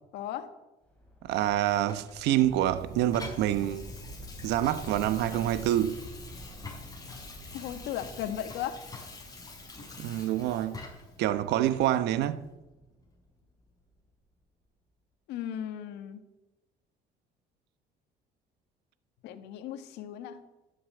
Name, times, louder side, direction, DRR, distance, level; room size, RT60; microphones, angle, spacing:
voice 1, 0.1-0.5 7.5-8.8 15.3-16.2 19.2-20.4, left 10 dB, 90° left, 1.6 m, -36 dB
sound 1, 0.9-13.9, equal, 5° left, 5.1 m, -48 dB
voice 2, 1.2-3.9 4.4-6.0 10.0-10.8 11.2-12.4, right 12 dB, 85° right, 1.0 m, -27 dB
Water tap faucet / Sink (filling or washing), 1.9-11.2 11.7-11.8, left 3 dB, 20° left, 5.9 m, -46 dB
13.0 x 10.0 x 9.3 m
cardioid pair, 110°, 17 cm